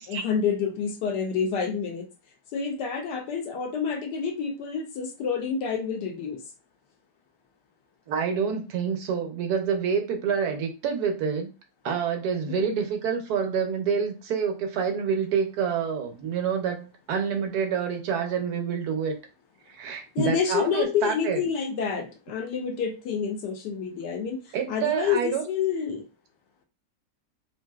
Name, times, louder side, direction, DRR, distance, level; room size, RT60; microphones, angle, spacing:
voice 1, 0.1-2.0 2.5-6.4 12.5-12.8 20.1-24.4 24.7-26.0, left 6 dB, 80° left, 1.3 m, -28 dB
voice 2, 8.1-11.5 11.8-19.2 19.7-21.4 24.5-25.4, right 6 dB, 70° right, 1.2 m, -27 dB
3.2 x 2.6 x 2.3 m
omnidirectional pair, 1.8 m